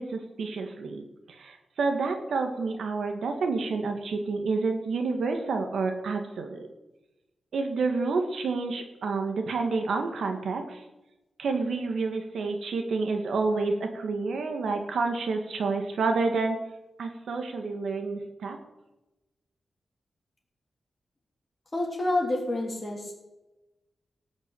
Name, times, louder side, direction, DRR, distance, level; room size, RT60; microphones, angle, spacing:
voice 1, 0.0-6.7 7.5-10.8 11.4-16.6 17.0-18.6, right 4 dB, 85° right, 5 dB, 1.9 m, -29 dB
voice 2, 21.7-23.1, left 2 dB, 25° left, -1 dB, 3.5 m, -28 dB
17.5 x 6.1 x 8.5 m, 1.0 s
wide cardioid pair, 155°, 0 cm